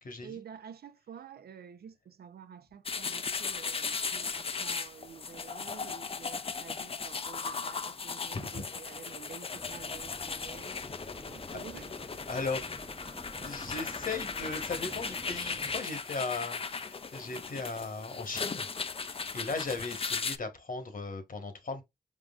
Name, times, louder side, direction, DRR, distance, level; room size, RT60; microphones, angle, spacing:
voice 1, 0.2-10.8 11.3-11.9, right 7 dB, 60° right, 0.5 m, -49 dB
sound 1, 2.9-20.4, left 5 dB, 30° left, 0.5 m, -37 dB
voice 2, 8.3-8.6 12.3-12.7 13.3-18.7 19.0-21.8, left 3 dB, 50° left, 1.3 m, -37 dB
Beach North Berwick, 9.5-15.8, right 1 dB, 5° right, 0.7 m, -49 dB
4.7 x 3.7 x 2.4 m
cardioid pair, 60°, 18 cm